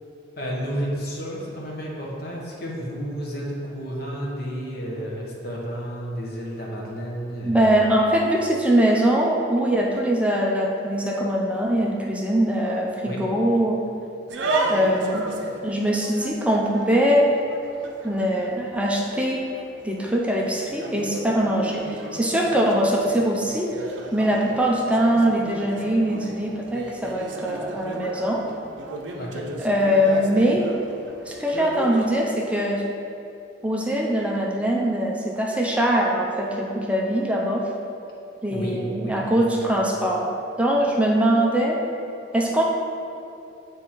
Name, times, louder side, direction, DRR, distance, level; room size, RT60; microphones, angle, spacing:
voice 1, 0.4-7.8 13.1-13.2 29.2-29.5 38.5-39.7, equal, 50° left, -3 dB, 1.1 m, -31 dB
voice 2, 7.4-13.8 14.7-15.2 15.6-17.3 18.0-19.4 19.8-23.7 24.1-28.4 29.6-30.7 31.3-32.8 33.6-37.7 38.4-40.3 40.6-41.8 42.3-42.6, equal, 5° right, -2 dB, 0.4 m, -22 dB
sound 1, 14.3-32.2, right 2 dB, 65° right, 0.6 m, -34 dB
7.2 x 3.5 x 4.4 m, 2.7 s
head